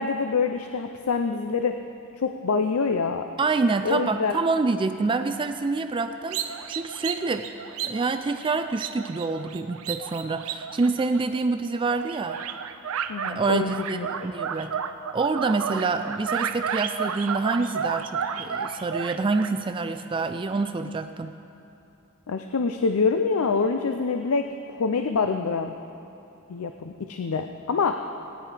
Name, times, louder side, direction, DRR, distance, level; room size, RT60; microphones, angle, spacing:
voice 1, 0.0-1.8 2.2-3.3 3.8-4.4 13.1-14.3 22.3-25.7 26.5-28.0, left 5 dB, 80° left, 6 dB, 0.5 m, -26 dB
voice 2, 3.4-6.4 6.7-7.5 7.8-12.4 13.3-14.7 15.1-21.3, right 3 dB, 25° right, 8 dB, 0.3 m, -26 dB
sound 1, 6.3-11.5 11.9-13.4 13.7-19.5, right 7 dB, 75° right, 0.6 m, -32 dB
16.5 x 10.0 x 4.9 m, 2.7 s
head